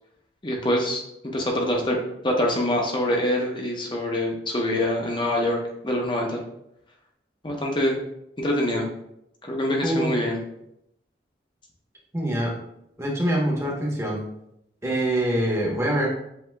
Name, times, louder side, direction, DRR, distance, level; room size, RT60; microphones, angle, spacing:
voice 1, 0.4-1.0 1.3-2.0 2.2-5.6 5.8-6.4 7.4-7.9 8.4-8.8 9.5-10.4, left 1 dB, 25° left, 0 dB, 0.8 m, -24 dB
voice 2, 12.1-12.5 13.0-14.2 14.8-16.1, right 1 dB, 15° right, -3 dB, 1.0 m, -24 dB
7.8 x 2.8 x 2.3 m, 0.79 s
head